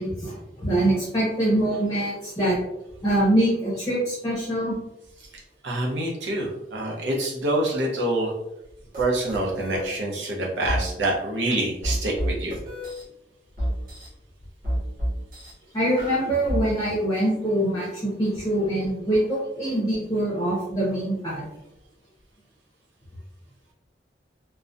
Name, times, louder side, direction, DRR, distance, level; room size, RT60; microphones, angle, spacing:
voice 1, 0.0-2.6 3.0-4.8 15.7-21.4, right 1 dB, 20° left, -7 dB, 0.6 m, -24 dB
voice 2, 5.6-8.3 9.0-12.6, right 1 dB, 80° right, -2 dB, 0.7 m, -26 dB
sound 1, 8.9-9.0 9.3-9.8 10.7-10.8 11.8-13.0 13.6-14.1 14.6-15.5 16.0-16.6, equal, 50° right, 0.8 m, -28 dB
2.3 x 2.1 x 2.5 m, 0.88 s
head